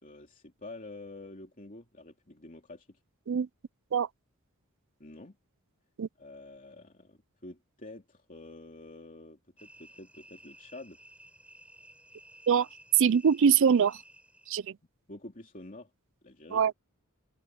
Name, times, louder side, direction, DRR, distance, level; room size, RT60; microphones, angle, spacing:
voice 1, 0.0-3.0 5.0-5.4 6.2-11.0 15.1-15.9 16.2-16.6, left 2 dB, 35° left, 3.0 m, -48 dB
sound 1, 9.6-14.7, right 1 dB, 5° right, 5.0 m, -55 dB
voice 2, 13.0-14.0 14.5-14.6 16.5-16.7, right 7 dB, 60° right, 0.4 m, -23 dB
open air
head